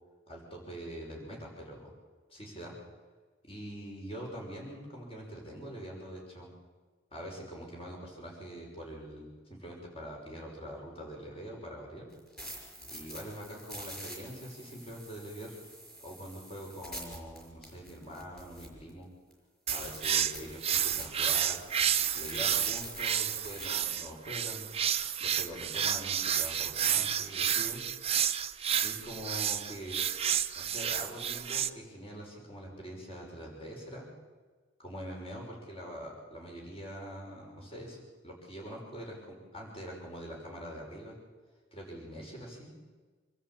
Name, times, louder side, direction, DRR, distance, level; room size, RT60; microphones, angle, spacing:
voice 1, 0.3-1.9 2.3-2.7 3.4-6.5 7.1-12.1 12.9-15.6 16.0-19.1 19.7-21.6 22.1-24.7 25.2-27.8 28.8-30.1 30.6-34.1 34.8-41.2 41.7-42.7, equal, 30° left, -1 dB, 6.0 m, -44 dB
sound 1, 12.1-18.9 19.3-19.4 19.7-23.7, right 1 dB, 5° left, 5.8 m, -45 dB
sound 2, 19.7-31.7, right 9 dB, 30° right, 0.8 m, -30 dB
26.5 x 13.0 x 8.8 m, 1.4 s
head